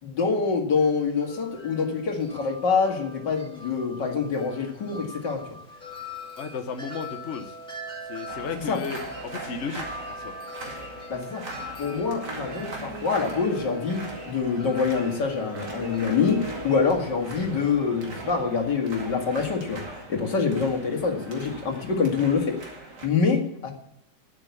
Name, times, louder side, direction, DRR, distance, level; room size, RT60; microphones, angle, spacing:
voice 1, 0.0-5.4 8.5-8.8 11.1-11.5 11.8-22.8 23.0-23.7, left 5 dB, 80° left, 2 dB, 2.8 m, -26 dB
Wind chime, 0.8-18.7, left 1 dB, 5° left, 2.6 m, -43 dB
voice 2, 6.4-7.6 8.0-10.3, left 5 dB, 45° left, 6 dB, 1.2 m, -34 dB
sound 1, 8.3-23.1, right 2 dB, 70° right, 2.9 m, -41 dB
sound 2, 11.8-18.7, left 1 dB, 25° left, 3.2 m, -40 dB
10.5 x 8.9 x 8.3 m, 0.79 s
omnidirectional pair, 1.9 m